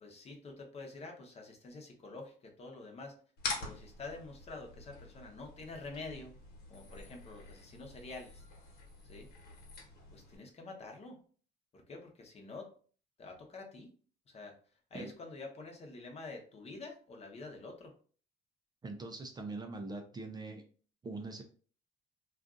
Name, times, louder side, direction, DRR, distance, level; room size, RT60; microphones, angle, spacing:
voice 1, 0.0-3.2 3.6-6.3 6.7-8.4 9.0-9.3 10.1-11.2 11.7-12.7 13.2-13.9 14.3-14.6 14.9-17.9, left 3 dB, 40° left, 2 dB, 0.9 m, -47 dB
sound 1, 3.4-10.4, left 3 dB, 75° left, 1.2 m, -46 dB
voice 2, 18.8-20.6 21.0-21.4, right 3 dB, 25° right, 5 dB, 0.4 m, -42 dB
2.5 x 2.4 x 3.7 m, 0.42 s
cardioid pair, 110°, 17 cm